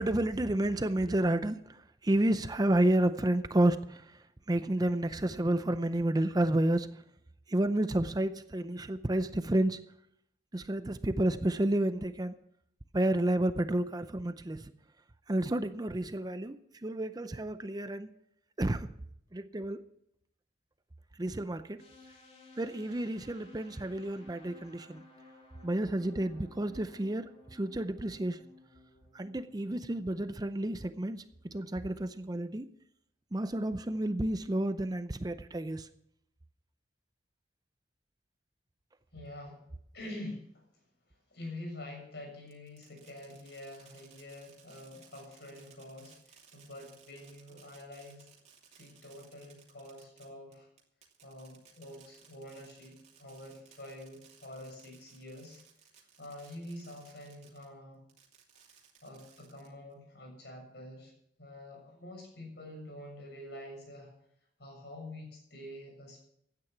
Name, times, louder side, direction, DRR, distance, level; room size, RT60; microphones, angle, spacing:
voice 1, 0.0-6.9 7.5-9.8 10.5-12.4 12.9-14.7 15.3-18.1 18.6-18.9 19.3-19.8 21.2-21.8 22.6-25.0 25.6-27.2 27.5-28.4 29.1-32.7 33.3-35.9, right 1 dB, 20° right, 11 dB, 0.5 m, -30 dB
sound 1, 21.8-31.6, left 3 dB, 35° left, 3.0 m, -58 dB
voice 2, 39.1-39.6 39.9-40.6 41.1-48.3 48.8-50.7 51.2-55.6 56.2-58.0 59.0-61.1 61.4-64.1 64.6-66.2, left 1 dB, 65° left, 2 dB, 6.9 m, -47 dB
Fireworks, 42.5-57.7 58.1-59.9, right 7 dB, 40° right, 2.7 m, -60 dB
16.0 x 9.7 x 6.0 m, 0.72 s
head